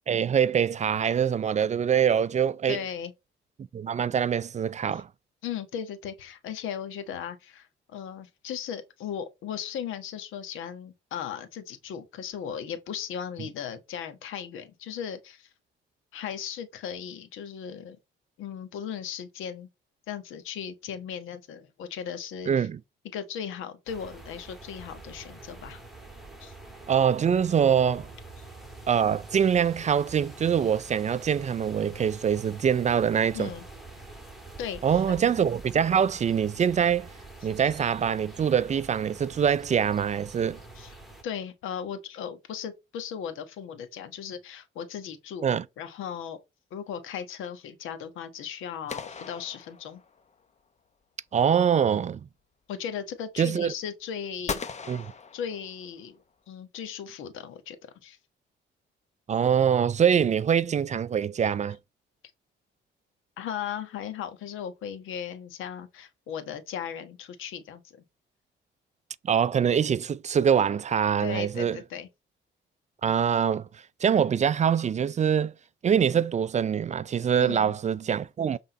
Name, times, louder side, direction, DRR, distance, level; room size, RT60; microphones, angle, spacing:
voice 1, 0.1-2.8 3.7-5.1 22.5-22.8 26.9-28.1 28.9-33.5 34.8-37.1 37.4-40.6 45.4-45.6 51.3-52.2 53.4-53.7 54.9-55.1 59.3-61.8 69.2-71.8 73.0-73.7 74.0-75.5 75.8-78.6, right 8 dB, 35° right, 0.4 m, -24 dB
voice 2, 2.7-3.1 4.9-5.0 5.4-15.5 16.1-18.0 18.4-19.7 20.1-22.7 23.1-25.8 26.4-26.5 33.3-33.6 34.6-35.0 40.7-40.9 41.2-45.4 45.8-46.4 46.7-50.0 52.7-54.6 55.3-56.2 56.5-57.8 58.0-58.2 63.4-67.8 71.2-72.1 77.4-77.8, left 8 dB, 85° left, 1.3 m, -37 dB
sound 1, 23.9-41.2, right 2 dB, ahead, 2.4 m, -46 dB
sound 2, 48.9-50.3 54.5-56.1, left 5 dB, 35° left, 0.9 m, -38 dB
7.7 x 3.7 x 4.1 m
cardioid pair, 90°, 20 cm